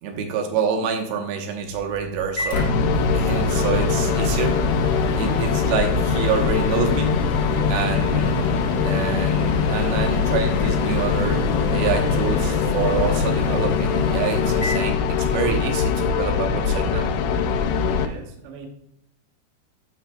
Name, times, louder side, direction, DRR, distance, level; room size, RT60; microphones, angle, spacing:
voice 1, 0.0-2.7 3.1-4.6 5.0-7.1 7.7-8.6 8.8-11.4 11.7-17.1, right 6 dB, 90° right, 4 dB, 3.3 m, -27 dB
Microwave oven, 1.7-15.7, right 1 dB, 50° left, 1.1 m, -30 dB
sound 1, 2.5-18.1, left 6 dB, 80° left, 2.2 m, -22 dB
voice 2, 17.9-18.7, right 4 dB, 70° right, 2 dB, 1.7 m, -40 dB
11.0 x 6.1 x 2.3 m, 0.77 s
omnidirectional pair, 4.9 m